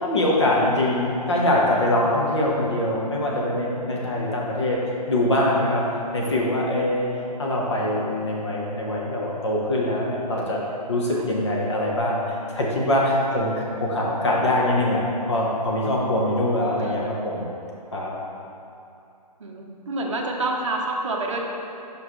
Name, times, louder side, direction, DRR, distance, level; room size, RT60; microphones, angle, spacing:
voice 1, 0.0-4.8 5.1-5.8 6.1-7.1 7.4-10.6 10.9-12.2 12.5-17.5 17.9-18.1, left 1 dB, 45° left, -3 dB, 1.0 m, -23 dB
voice 2, 16.6-17.0 19.4-21.4, right 2 dB, 50° right, -1 dB, 0.8 m, -28 dB
7.3 x 5.1 x 3.1 m, 2.7 s
hypercardioid pair, 180°, 21 cm